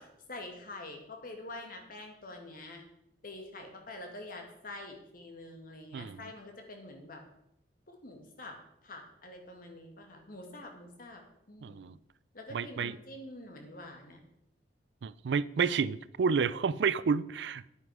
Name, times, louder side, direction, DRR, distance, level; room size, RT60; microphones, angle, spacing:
voice 1, 0.0-2.8 3.2-7.2 7.9-8.6 8.8-11.2 11.5-11.8 12.3-14.2, left 2 dB, 55° left, 3 dB, 2.2 m, -46 dB
voice 2, 11.6-12.0 12.5-13.0 15.0-17.7, right 5 dB, 75° right, 19 dB, 0.4 m, -30 dB
9.7 x 9.3 x 4.9 m, 0.79 s
head